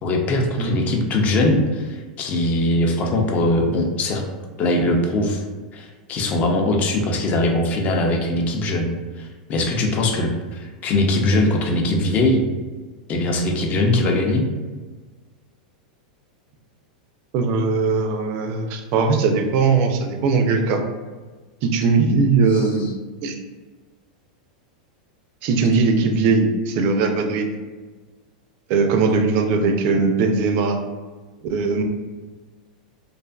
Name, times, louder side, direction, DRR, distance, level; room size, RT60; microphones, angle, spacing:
voice 1, 0.0-4.2 4.6-5.4 5.7-8.9 9.2-12.4 13.1-14.5 22.5-22.6, left 1 dB, 35° left, 2 dB, 0.5 m, -21 dB
voice 2, 17.3-20.8 21.6-22.9 23.2-23.3 25.4-27.5 28.7-30.8 31.4-31.8, right 4 dB, 50° right, 5 dB, 0.4 m, -19 dB
2.5 x 2.4 x 2.3 m, 1.3 s
hypercardioid pair, 115°, 4 cm